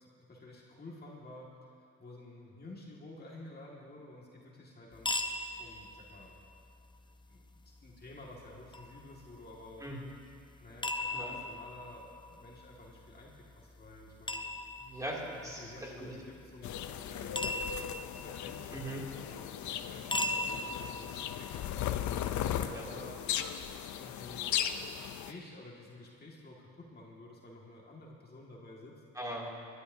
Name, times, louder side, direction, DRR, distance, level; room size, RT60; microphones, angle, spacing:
voice 1, 0.0-1.5 2.0-5.1 5.6-6.4 7.3-7.5 7.8-9.8 10.6-14.5 15.4-21.5 22.2-23.2 23.9-24.5 24.8-29.0, left 2 dB, 30° left, -4 dB, 2.0 m, -51 dB
sound 1, 4.9-22.9, left 2 dB, 15° left, 0.7 m, -41 dB
voice 2, 14.8-16.1 18.7-19.0 22.7-23.0 29.1-29.7, right 1 dB, 10° right, -4 dB, 2.6 m, -40 dB
sound 2, 16.6-25.3, left 10 dB, 70° left, 0.6 m, -37 dB
20.5 x 11.5 x 2.7 m, 2.3 s
cardioid pair, 90°, 30 cm